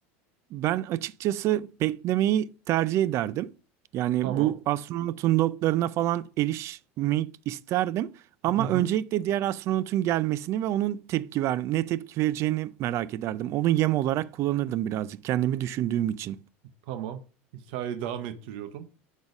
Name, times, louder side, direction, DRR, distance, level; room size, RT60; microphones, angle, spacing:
voice 1, 0.5-3.5 3.9-8.1 8.4-16.4, right 13 dB, 50° right, 0.4 m, -27 dB
voice 2, 4.2-4.5 8.6-8.9 16.9-17.2 17.7-19.1, right 10 dB, 70° right, 0.9 m, -34 dB
7.3 x 4.0 x 4.8 m
supercardioid pair, 105°, 6 cm